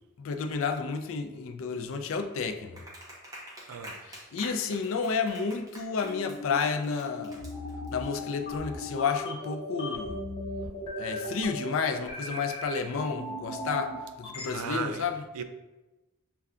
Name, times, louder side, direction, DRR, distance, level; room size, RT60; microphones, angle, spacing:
voice 1, 0.2-2.8 4.0-7.4 7.9-10.2 11.0-15.3, left 5 dB, 60° left, 7 dB, 0.3 m, -31 dB
Clapping, 2.8-8.1, right 1 dB, 15° right, 0.6 m, -46 dB
sound 1, 6.0-14.5, left 1 dB, 25° left, 0.8 m, -37 dB
voice 2, 14.4-15.0 15.3-15.4, right 6 dB, 80° right, 9 dB, 0.4 m, -35 dB
6.5 x 2.2 x 2.4 m, 1.1 s
head